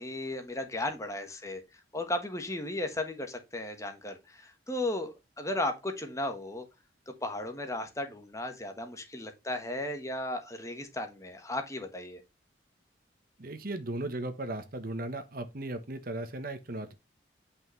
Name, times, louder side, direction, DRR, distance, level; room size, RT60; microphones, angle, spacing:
voice 1, 0.0-1.6 1.9-6.6 7.1-12.2, left 1 dB, 15° left, 1.3 m, -35 dB
voice 2, 13.4-16.9, right 2 dB, 50° right, 1.1 m, -36 dB
8.6 x 5.6 x 3.2 m
head